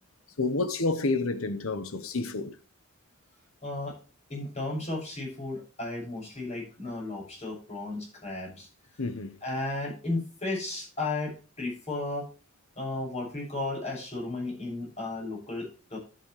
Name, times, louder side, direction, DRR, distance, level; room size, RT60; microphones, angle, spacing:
voice 1, 0.4-2.6 9.0-9.4, left 3 dB, 80° left, 1.1 m, -29 dB
voice 2, 3.6-4.0 4.3-8.7 9.4-11.3 11.6-12.3 12.8-16.0, left 2 dB, 30° left, 6.8 m, -34 dB
11.5 x 9.4 x 3.3 m
head